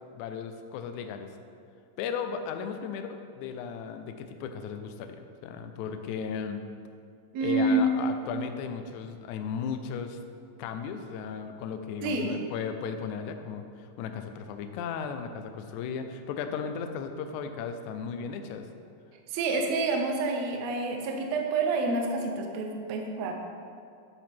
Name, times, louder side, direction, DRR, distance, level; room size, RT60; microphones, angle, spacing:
voice 1, 0.1-1.3 2.0-5.2 5.4-6.6 7.4-10.2 10.6-18.7, left 6 dB, 80° left, 7 dB, 1.8 m, -35 dB
voice 2, 7.3-8.0 12.0-12.3 19.3-23.3, right 2 dB, 70° right, 2 dB, 1.7 m, -28 dB
11.0 x 7.5 x 3.6 m, 2.4 s
omnidirectional pair, 4.0 m